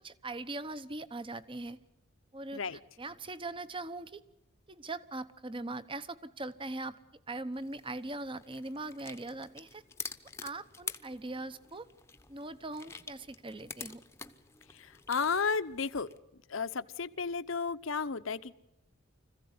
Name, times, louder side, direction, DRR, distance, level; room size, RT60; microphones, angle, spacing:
voice 1, 0.0-1.8 2.3-2.6 3.0-4.2 4.7-7.0 7.3-10.1 10.4-11.9 12.3-14.0, right 2 dB, 25° right, 14 dB, 0.9 m, -41 dB
sound 1, 7.5-16.2, left 5 dB, 15° left, 0.9 m, -47 dB
voice 2, 14.7-16.1 16.5-18.5, left 5 dB, 65° left, 13 dB, 0.9 m, -33 dB
25.5 x 15.5 x 9.5 m, 0.87 s
head